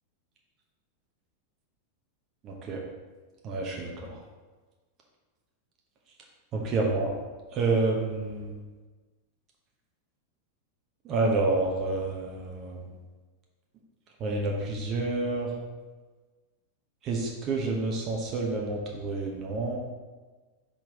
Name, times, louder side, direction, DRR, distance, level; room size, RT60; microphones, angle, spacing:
voice 1, 3.4-3.9 6.5-7.1 7.5-8.5 11.1-12.8 14.2-15.5 17.1-19.8, right 3 dB, 30° right, -1 dB, 1.0 m, -28 dB
5.8 x 5.2 x 3.7 m, 1.3 s
figure-of-eight pair, 90°, 0 cm